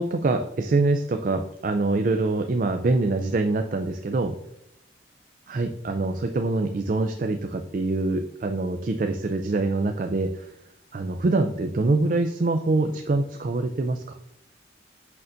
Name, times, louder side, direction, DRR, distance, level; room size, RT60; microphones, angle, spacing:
voice 1, 0.0-4.3 5.5-10.5 10.9-14.0, right 2 dB, 45° right, 6 dB, 0.4 m, -24 dB
6.5 x 5.6 x 2.6 m, 0.80 s
head